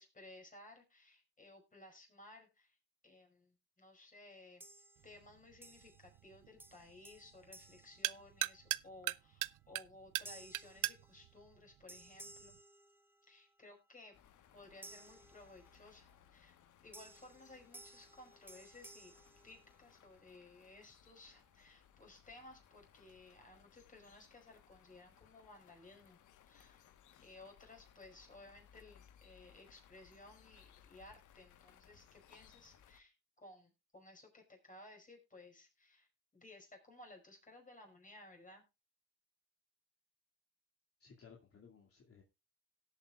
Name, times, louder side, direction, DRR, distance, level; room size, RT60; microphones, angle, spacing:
voice 1, 0.0-2.8 3.0-4.6 5.0-12.6 13.3-14.2 14.5-16.6 16.8-19.1 19.4-26.2 26.5-26.9 27.2-36.1 36.3-38.6, left 2 dB, 25° left, 3 dB, 5.4 m, -58 dB
sound 1, 4.6-5.3 5.6-6.3 6.6-8.8 9.3-9.5 10.2-11.6 11.9-13.5 14.8-16.0 16.9-20.2, right 2 dB, 5° right, 0.9 m, -58 dB
sound 2, 5.0-12.6, right 18 dB, 90° right, 0.5 m, -43 dB
sound 3, 14.1-33.0, left 9 dB, 80° left, 1.4 m, -65 dB
voice 2, 41.0-42.2, left 6 dB, 50° left, 0 dB, 2.5 m, -59 dB
18.5 x 8.1 x 2.4 m, 0.26 s
cardioid pair, 90°, 30 cm